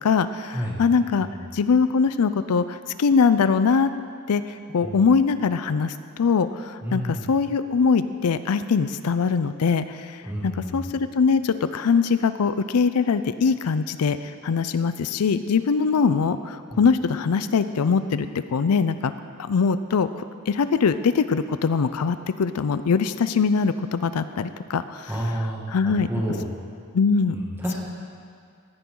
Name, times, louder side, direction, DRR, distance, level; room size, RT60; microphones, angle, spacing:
voice 1, 0.0-1.3 1.5-3.9 4.3-14.2 14.4-19.1 19.5-25.1 25.7-26.1 26.9-27.4, left 5 dB, 85° left, 12 dB, 0.5 m, -22 dB
voice 2, 6.8-7.3 10.2-10.8 16.7-16.8 25.1-26.4 27.3-27.8, equal, 10° right, -4 dB, 2.1 m, -30 dB
16.5 x 10.0 x 3.8 m, 2.3 s
head